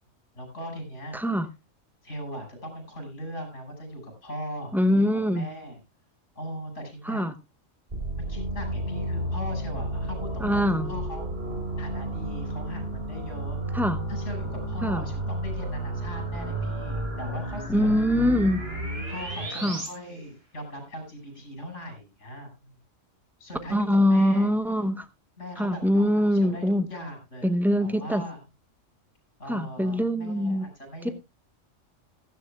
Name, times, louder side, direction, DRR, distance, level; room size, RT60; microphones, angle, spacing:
voice 1, 0.4-1.2 2.0-5.8 6.4-7.3 8.2-11.3 11.8-13.8 14.1-18.4 19.1-22.8 23.4-24.5 25.4-27.5 27.8-28.4 29.4-31.1, equal, 70° left, 4 dB, 5.7 m, -39 dB
voice 2, 1.1-1.5 4.7-5.5 7.1-7.3 10.4-10.9 13.7-14.0 14.8-15.0 17.7-18.6 19.6-19.8 23.7-25.1 25.6-26.9 27.4-28.2 29.5-30.7 31.0-31.1, equal, ahead, 11 dB, 0.6 m, -23 dB
sound 1, 7.9-19.9, right 1 dB, 50° right, 3.9 m, -32 dB
16.0 x 14.0 x 2.2 m, 0.24 s
omnidirectional pair, 1.3 m